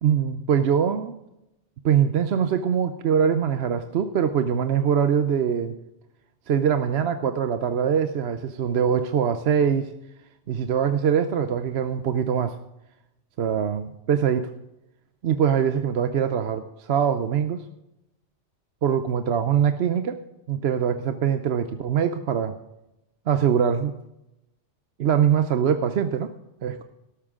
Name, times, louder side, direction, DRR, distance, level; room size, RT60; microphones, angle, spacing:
voice 1, 0.0-1.1 1.8-5.7 6.5-9.9 10.5-12.6 13.4-14.5 15.2-17.6 18.8-20.2 20.5-22.5 23.3-23.9 25.0-26.3 26.6-26.8, right 8 dB, 65° right, 9 dB, 0.9 m, -23 dB
13.0 x 12.5 x 3.7 m, 0.88 s
omnidirectional pair, 1.2 m